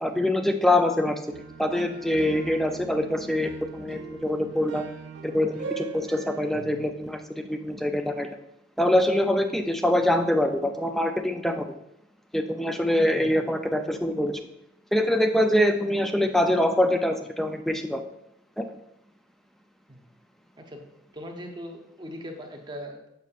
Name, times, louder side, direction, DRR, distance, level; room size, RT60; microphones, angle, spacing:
voice 1, 0.0-1.2 1.6-4.8 5.2-8.4 8.8-11.7 12.3-14.4 14.9-18.0 18.6-18.7, left 1 dB, ahead, 6 dB, 0.3 m, -24 dB
sound 1, 1.3-6.9, right 5 dB, 65° right, 0.5 m, -41 dB
voice 2, 21.1-23.1, equal, 20° right, 2 dB, 0.7 m, -40 dB
6.7 x 6.3 x 2.5 m, 0.81 s
head